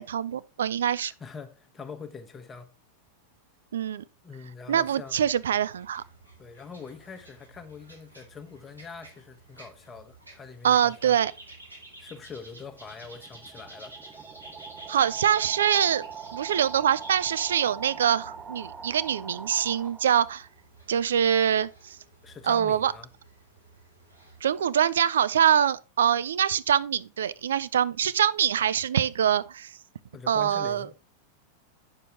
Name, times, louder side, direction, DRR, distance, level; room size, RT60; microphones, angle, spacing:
voice 1, 0.0-1.1 3.7-4.0 4.7-6.0 10.6-11.3 14.9-16.0 16.3-20.5 20.9-22.0 22.5-22.9 24.4-29.7 30.3-30.9, right 9 dB, 65° right, 0.5 m, -24 dB
voice 2, 1.1-2.7 4.2-5.3 6.4-11.2 12.0-14.0 22.2-23.1 30.1-30.9, left 5 dB, 20° left, 1.2 m, -43 dB
sound 1, 5.0-24.7, right 2 dB, 90° right, 3.6 m, -51 dB
sound 2, 12.8-20.5, right 6 dB, 20° right, 0.6 m, -42 dB
9.0 x 6.8 x 3.6 m
figure-of-eight pair, 90°, 0 cm